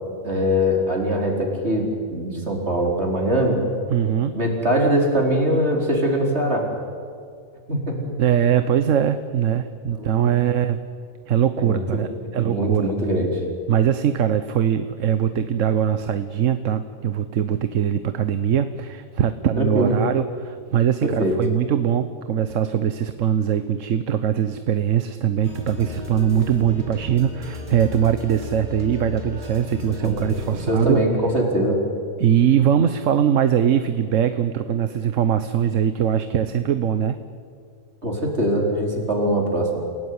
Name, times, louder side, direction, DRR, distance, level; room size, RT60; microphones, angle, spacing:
voice 1, 0.2-3.6 4.3-6.7 7.7-8.0 9.9-10.3 11.6-12.0 12.4-13.4 19.6-20.0 21.0-21.4 30.0-30.2 30.7-31.8 38.0-39.8, equal, 55° right, 0 dB, 4.7 m, -22 dB
voice 2, 3.9-4.3 8.2-10.8 11.3-12.9 13.7-31.0 32.2-37.2, right 9 dB, 75° right, 11 dB, 1.3 m, -21 dB
sound 1, 25.4-30.9, left 3 dB, 35° right, 4.0 m, -34 dB
28.5 x 17.5 x 9.6 m, 2.2 s
omnidirectional pair, 1.3 m